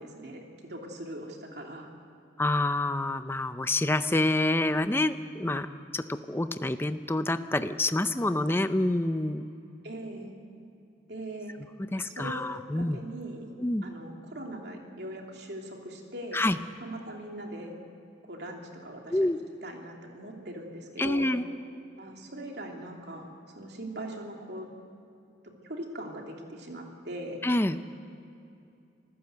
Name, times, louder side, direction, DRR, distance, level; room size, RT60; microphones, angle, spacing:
voice 1, 0.0-1.9 9.8-10.3 11.1-11.5 11.9-12.5 12.7-13.5 13.8-16.4 16.8-17.7 18.2-19.2 19.6-21.3 22.0-23.3 23.5-24.7 25.6-27.4, right 1 dB, 60° right, 1 dB, 3.0 m, -40 dB
voice 2, 2.4-9.5 11.9-13.0 13.6-13.8 16.3-16.6 19.1-19.4 21.0-21.4 27.4-27.8, left 2 dB, 10° left, 10 dB, 0.5 m, -27 dB
26.5 x 15.0 x 8.0 m, 2.6 s
head